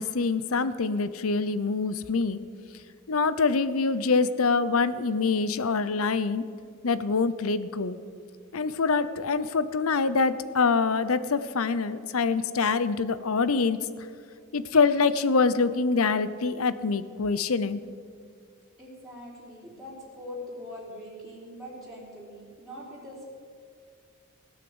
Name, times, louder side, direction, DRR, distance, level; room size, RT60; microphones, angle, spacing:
voice 1, 0.0-2.4 3.1-6.4 6.8-8.0 8.5-13.8 14.5-17.8, left 4 dB, 75° left, 15 dB, 0.7 m, -25 dB
voice 2, 18.8-23.3, left 1 dB, ahead, -6 dB, 3.7 m, -42 dB
16.5 x 9.4 x 8.0 m, 2.2 s
head